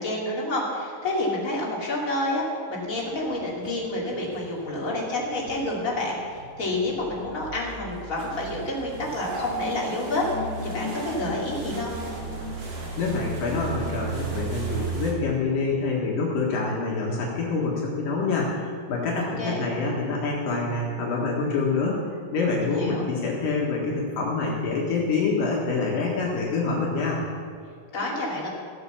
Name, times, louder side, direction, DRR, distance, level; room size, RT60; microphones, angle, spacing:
voice 1, 0.0-11.9 19.2-19.6 22.6-23.1 27.9-28.5, left 1 dB, 25° left, -4 dB, 2.6 m, -29 dB
sound 1, 2.8-15.1, right 4 dB, 50° right, 2.8 m, -37 dB
sound 2, 9.1-13.7, left 1 dB, 85° right, 3.9 m, -37 dB
voice 2, 13.0-22.0 22.3-27.2, left 3 dB, 70° left, -3 dB, 3.3 m, -26 dB
15.0 x 8.0 x 7.1 m, 2.2 s
omnidirectional pair, 4.1 m